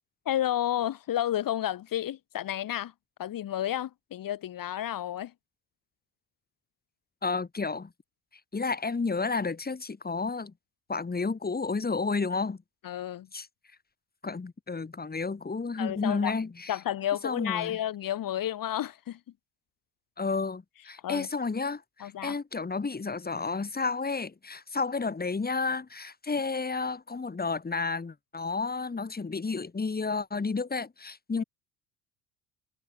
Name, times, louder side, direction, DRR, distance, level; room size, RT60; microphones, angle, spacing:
voice 1, 0.3-2.9 3.2-5.3 12.8-13.3 15.8-16.3 16.7-19.2 21.0-21.3 22.0-22.4 31.4-31.5, left 11 dB, 45° left, 4.2 m, -31 dB
voice 2, 7.2-7.9 8.5-10.5 10.9-12.6 13.3-13.5 14.2-16.8 17.2-17.8 20.2-31.4, left 4 dB, 20° left, 6.4 m, -31 dB
figure-of-eight pair, 65°, 47 cm